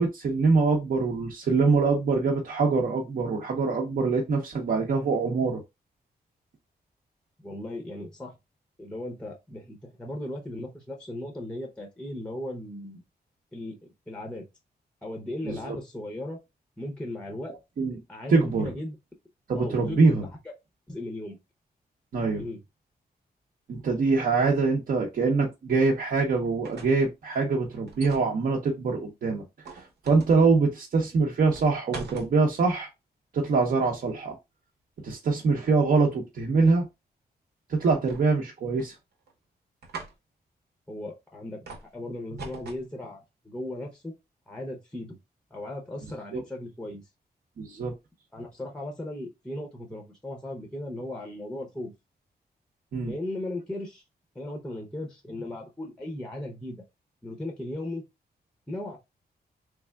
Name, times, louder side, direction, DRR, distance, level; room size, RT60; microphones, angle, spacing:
voice 1, 0.0-5.6 15.4-15.8 17.8-18.0 18.3-18.6 19.5-20.3 22.1-22.4 23.7-29.4 29.7-32.9 33.3-34.4 35.0-36.8 37.7-38.9 46.3-46.4 47.6-47.9 52.9-53.1, right 4 dB, 60° right, 0.7 m, -24 dB
voice 2, 7.4-8.4 8.8-13.0 13.5-14.5 15.0-16.4 16.8-17.5 17.9-19.0 19.5-20.3 20.9-21.4 22.4-22.6 40.9-44.1 44.5-45.2 45.5-47.0 48.3-51.9 53.0-54.0 54.3-56.8 57.2-58.0 58.7-59.0, left 1 dB, 5° left, 0.6 m, -37 dB
sound 1, 26.4-27.1 27.9-28.3 29.6-30.4 31.5-32.3 37.9-38.5 38.8-39.3 39.8-40.1 41.7-41.9 42.4-42.9, right 4 dB, 90° right, 1.0 m, -42 dB
3.4 x 3.3 x 2.2 m
wide cardioid pair, 145°, 17 cm